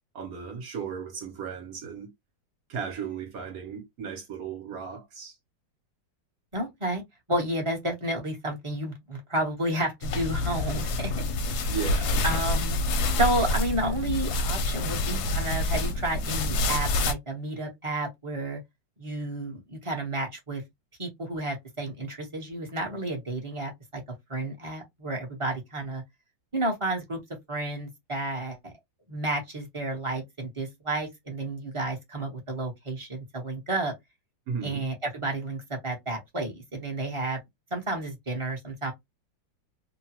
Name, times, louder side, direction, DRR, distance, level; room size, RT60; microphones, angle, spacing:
voice 1, 0.1-2.1 2.7-5.3 11.7-12.2 34.5-34.8, right 6 dB, 60° right, 1.1 m, -35 dB
voice 2, 6.5-7.0 7.3-11.1 11.4-11.7 12.2-12.8 13.2-18.6 19.0-20.6 21.0-24.0 24.3-26.0 26.5-27.2 27.5-28.7 29.1-33.9 34.6-37.4 37.7-38.9, right 1 dB, 25° right, 0.6 m, -31 dB
sound 1, 10.0-17.1, left 2 dB, 75° left, 1.0 m, -27 dB
2.9 x 2.2 x 2.8 m
omnidirectional pair, 2.0 m